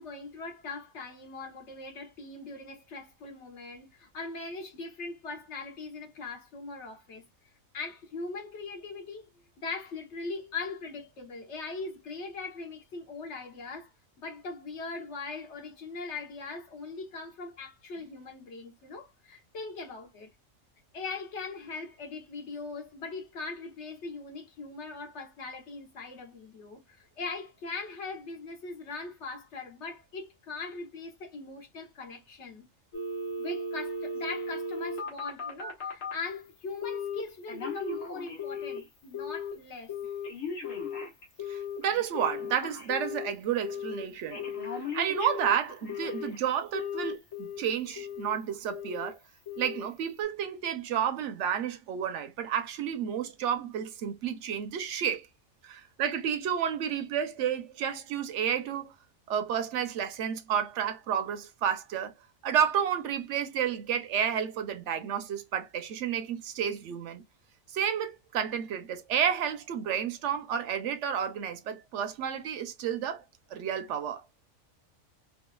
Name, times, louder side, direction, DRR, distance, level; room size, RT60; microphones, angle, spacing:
voice 1, 0.0-7.2 7.7-9.2 9.6-13.9 14.2-20.3 20.9-32.7 33.4-39.9, left 3 dB, 65° left, 1.3 m, -40 dB
Telephone, 32.9-36.2 36.8-37.2 37.5-38.8 39.1-39.5 39.9-43.3 43.6-44.0 44.3-46.4 46.7-47.6 48.0-48.3 48.7-49.1 49.5-49.8 50.2-50.3, left 4 dB, 85° left, 1.5 m, -36 dB
voice 2, 41.5-44.4 44.7-49.2 49.6-55.3 55.6-58.9 59.3-62.1 62.4-67.2 67.7-73.2 73.5-74.2, right 8 dB, 70° right, 0.9 m, -31 dB
4.5 x 2.4 x 2.2 m
omnidirectional pair, 1.3 m